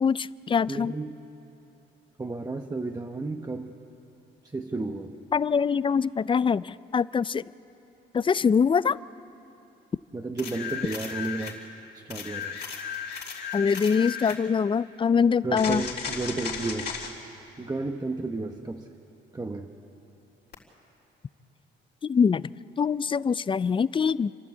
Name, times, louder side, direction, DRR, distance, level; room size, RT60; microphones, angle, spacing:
voice 1, 0.0-0.9 5.3-7.4 8.1-9.0 13.5-15.8 22.0-22.5 22.8-24.3, left 6 dB, 25° left, 19 dB, 0.4 m, -24 dB
voice 2, 0.7-1.1 2.2-3.8 4.4-5.1 10.1-11.6 11.9-12.6 15.4-17.0 17.6-18.9 19.3-19.7, right 3 dB, 20° right, 3 dB, 1.0 m, -32 dB
sound 1, 10.4-11.6 12.1-14.4 15.6-17.1 20.5-20.6, left 7 dB, 55° left, 4.0 m, -35 dB
29.0 x 12.0 x 8.5 m, 2.9 s
cardioid pair, 90°, 20 cm